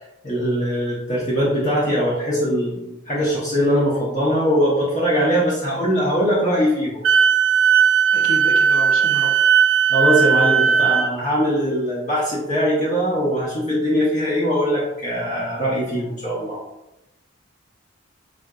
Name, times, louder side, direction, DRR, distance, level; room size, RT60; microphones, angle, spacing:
voice 1, 0.2-7.0 9.9-16.6, equal, 35° left, -7 dB, 0.7 m, -21 dB
Wind instrument woodwind instrument, 7.0-11.1, right 7 dB, 65° right, 0.4 m, -17 dB
voice 2, 8.1-9.4, left 2 dB, 80° left, 4 dB, 0.5 m, -31 dB
3.5 x 2.6 x 2.2 m, 0.93 s
head